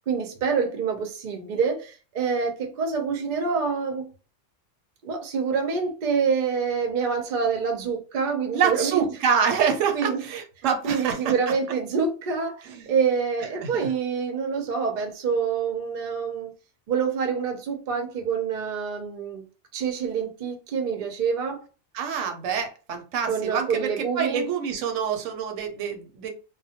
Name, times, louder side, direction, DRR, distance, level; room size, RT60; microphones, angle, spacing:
voice 1, 0.1-4.1 5.0-9.0 9.9-10.2 10.8-16.5 16.9-19.4 19.7-21.6 23.3-24.5, right 6 dB, 55° right, 0.6 m, -26 dB
voice 2, 8.5-11.3 12.7-12.9 13.6-13.9 21.9-26.3, right 7 dB, 85° right, 0.9 m, -26 dB
2.1 x 2.1 x 2.7 m
omnidirectional pair, 1.3 m